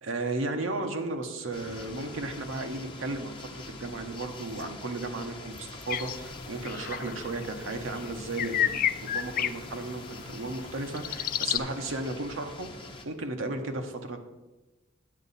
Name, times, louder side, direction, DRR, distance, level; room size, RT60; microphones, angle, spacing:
voice 1, 0.0-12.7 13.0-14.2, right 2 dB, 75° right, 5 dB, 0.9 m, -34 dB
sound 1, 1.5-13.1, left 2 dB, 25° left, 0.9 m, -44 dB
sound 2, 5.9-11.6, left 10 dB, 45° left, 0.4 m, -32 dB
9.5 x 8.2 x 4.1 m, 1.1 s
head